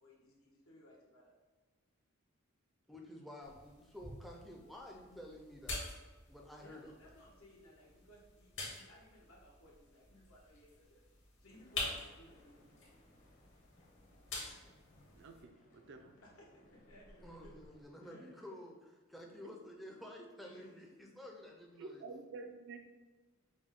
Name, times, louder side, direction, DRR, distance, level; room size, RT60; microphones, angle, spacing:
voice 1, 0.0-1.3 6.6-11.0 11.4-12.8 16.2-17.6 18.0-18.6 20.4-20.8, equal, 75° left, -3 dB, 1.0 m, -61 dB
voice 2, 2.9-6.0 6.3-6.9 17.2-22.0, left 1 dB, ahead, 1 dB, 0.5 m, -51 dB
sound 1, 3.4-15.4, left 3 dB, 60° left, 1.2 m, -48 dB
sound 2, 11.5-17.8, left 1 dB, 35° left, 0.8 m, -64 dB
voice 3, 15.1-16.1 21.8-22.8, right 3 dB, 55° right, 6 dB, 0.4 m, -49 dB
5.1 x 2.2 x 3.6 m, 1.3 s
head